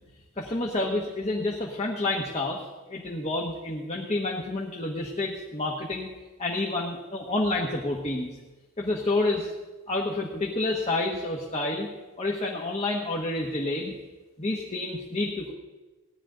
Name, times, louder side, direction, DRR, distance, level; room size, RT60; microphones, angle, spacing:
voice 1, 0.4-6.1 6.4-8.3 8.8-9.5 9.9-11.9 12.2-13.9 14.4-15.5, left 2 dB, 30° left, -1 dB, 1.2 m, -29 dB
17.0 x 11.0 x 3.8 m, 1.2 s
head